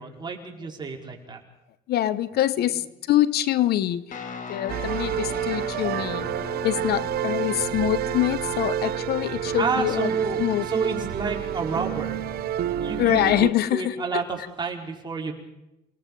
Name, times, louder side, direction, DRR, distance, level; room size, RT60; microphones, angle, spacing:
voice 1, 0.0-1.4 2.6-2.7 9.6-12.2 12.8-13.4 13.7-15.4, right 4 dB, 25° right, 1 dB, 4.6 m, -30 dB
voice 2, 1.9-4.0 4.5-6.3 6.6-10.1 10.4-10.6 13.0-14.2, left 13 dB, 70° left, 16 dB, 0.9 m, -24 dB
Guitar, 4.1-13.5, left 6 dB, 50° left, 2.8 m, -40 dB
sound 1, 4.7-13.5, right 11 dB, 65° right, 0.9 m, -29 dB
29.0 x 19.5 x 5.5 m, 0.92 s
cardioid pair, 110°, 17 cm